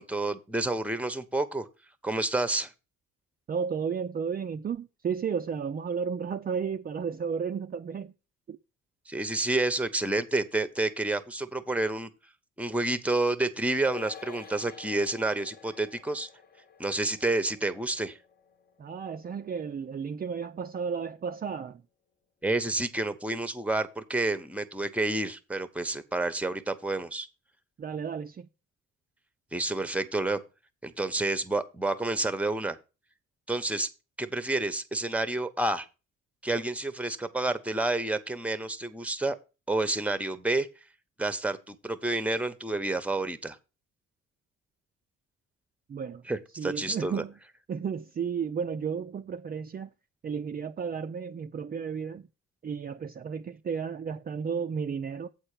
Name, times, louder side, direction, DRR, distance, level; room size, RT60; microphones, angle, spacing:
voice 1, 0.0-1.7 2.0-2.7 9.1-12.1 12.6-16.3 16.8-18.2 22.4-27.3 29.5-30.4 30.8-32.8 33.5-33.9 34.2-35.9 36.4-39.4 39.7-40.7 41.2-43.6 46.3-47.2, right 2 dB, 5° right, 0.9 m, -29 dB
voice 2, 3.5-8.1 8.5-8.6 18.8-21.8 27.8-28.5 45.9-46.2 46.6-47.3 47.7-49.9 50.2-52.3 52.6-55.3, right 6 dB, 30° right, 0.5 m, -33 dB
sound 1, 13.8-20.5 20.8-20.9, left 6 dB, 30° left, 1.0 m, -50 dB
8.0 x 4.4 x 6.6 m
cardioid pair, 90°, 30 cm